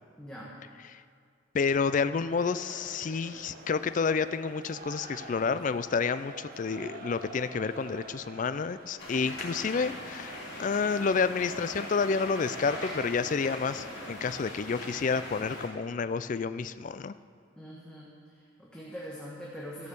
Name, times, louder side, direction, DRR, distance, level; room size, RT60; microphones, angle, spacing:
voice 1, 0.2-0.5 17.6-19.9, equal, 5° left, -6 dB, 1.3 m, -43 dB
voice 2, 1.5-17.1, left 5 dB, 40° left, 13 dB, 0.4 m, -29 dB
sound 1, 2.3-14.2, right 2 dB, 50° right, 1.1 m, -47 dB
sound 2, 9.0-15.7, left 1 dB, 60° left, 3.6 m, -41 dB
16.0 x 6.5 x 6.8 m, 2.2 s
head